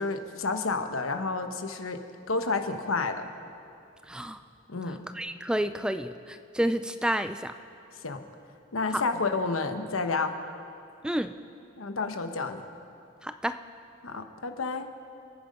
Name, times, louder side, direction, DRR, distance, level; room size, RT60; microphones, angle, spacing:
voice 1, 0.0-2.0 2.3-3.3 4.7-5.0 8.0-8.2 8.7-10.3 11.8-12.6 14.0-14.9, left 3 dB, 85° left, 7 dB, 1.1 m, -30 dB
voice 2, 4.1-4.4 5.1-7.5 11.0-11.3 13.2-13.6, right 1 dB, 5° right, 10 dB, 0.3 m, -30 dB
28.0 x 9.5 x 5.2 m, 2.7 s
head